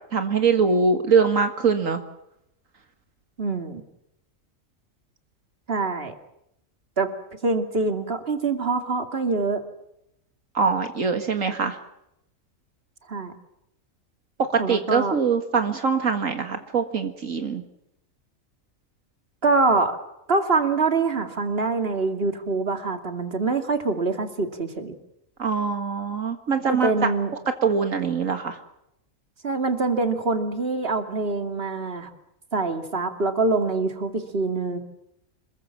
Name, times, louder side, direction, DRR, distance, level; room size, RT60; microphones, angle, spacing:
voice 1, 0.1-2.0 10.5-11.8 14.4-17.6 25.4-26.9 27.6-28.6, right 5 dB, 75° right, 7 dB, 2.1 m, -23 dB
voice 2, 3.4-3.8 5.7-6.1 7.0-7.1 7.4-9.6 13.1-13.3 14.6-15.1 19.4-20.0 20.3-24.9 26.7-27.3 29.4-32.1 32.5-34.8, right 3 dB, 45° right, 7 dB, 2.7 m, -24 dB
27.0 x 22.0 x 7.4 m, 0.82 s
omnidirectional pair, 1.4 m